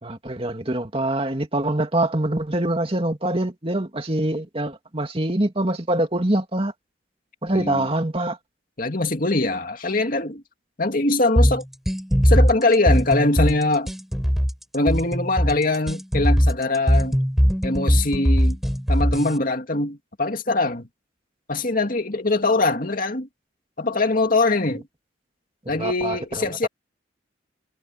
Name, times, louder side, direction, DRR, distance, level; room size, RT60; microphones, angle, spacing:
voice 1, 0.0-6.7 7.4-8.4 25.7-26.7, right 1 dB, 30° right, 2.4 m, -24 dB
voice 2, 7.5-7.9 8.8-10.4 10.8-11.6 12.2-13.9 14.7-17.2 17.6-18.6 18.9-20.9 21.5-23.3 23.8-24.9 25.7-26.7, left 2 dB, 45° left, 2.5 m, -22 dB
sound 1, 11.4-19.4, equal, ahead, 4.2 m, -20 dB
head